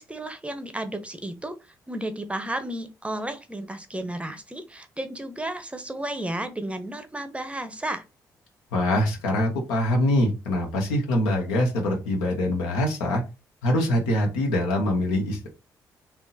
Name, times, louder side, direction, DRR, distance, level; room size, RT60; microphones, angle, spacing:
voice 1, 0.0-1.6 1.9-8.0, right 1 dB, 15° right, 0.7 m, -33 dB
voice 2, 8.7-13.2 13.6-15.5, left 1 dB, 75° left, 1.0 m, -24 dB
3.6 x 2.9 x 2.7 m
hypercardioid pair, 40°, 9 cm